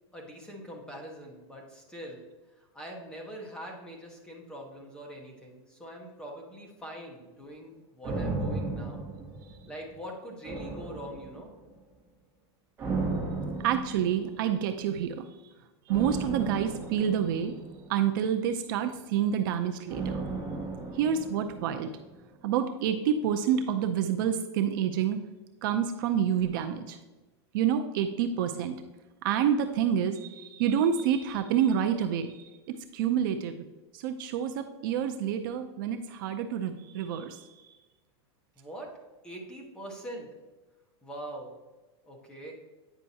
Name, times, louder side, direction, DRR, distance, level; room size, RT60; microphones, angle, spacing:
voice 1, 0.1-2.2 2.6-9.0 9.6-11.5 38.5-38.9 39.2-40.3 41.0-41.5 42.0-42.5, right 1 dB, 5° left, -1 dB, 1.0 m, -43 dB
sound 1, 8.0-9.9 10.4-11.7 12.8-14.5 15.9-18.3 19.9-22.1 22.3-22.4, right 3 dB, 15° right, 2.0 m, -35 dB
voice 2, 13.6-15.3 15.9-17.5 17.9-20.2 20.9-21.9 22.4-25.2 25.6-27.0 27.5-28.8 29.2-32.5 32.9-33.5 33.9-37.5, right 8 dB, 50° right, 7 dB, 0.5 m, -28 dB
9.0 x 5.4 x 2.7 m, 1.2 s
supercardioid pair, 170°, 14 cm